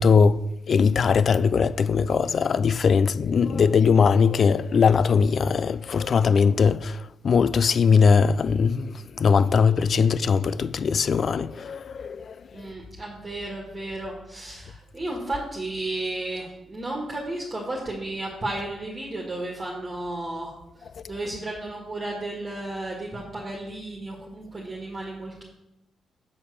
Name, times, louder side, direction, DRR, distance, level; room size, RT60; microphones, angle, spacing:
voice 1, 0.0-12.4, left 5 dB, 55° left, 0.3 m, -20 dB
voice 2, 12.5-20.5 21.1-25.4, right 2 dB, 25° right, 1.8 m, -33 dB
7.2 x 4.7 x 6.7 m
cardioid pair, 80°, 0 cm